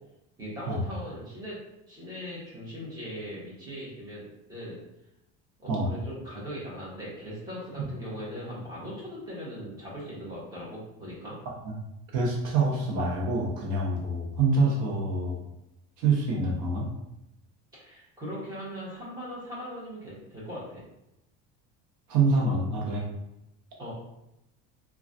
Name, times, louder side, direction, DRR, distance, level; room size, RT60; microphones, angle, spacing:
voice 1, 0.4-1.6 1.9-4.8 5.6-11.4 17.8-20.8 23.8-23.9, equal, 10° right, -7 dB, 1.0 m, -39 dB
voice 2, 12.1-15.4 16.0-16.8 22.1-23.0, right 3 dB, 65° right, -2 dB, 0.8 m, -26 dB
3.1 x 2.3 x 2.6 m, 0.88 s
cardioid pair, 155°, 32 cm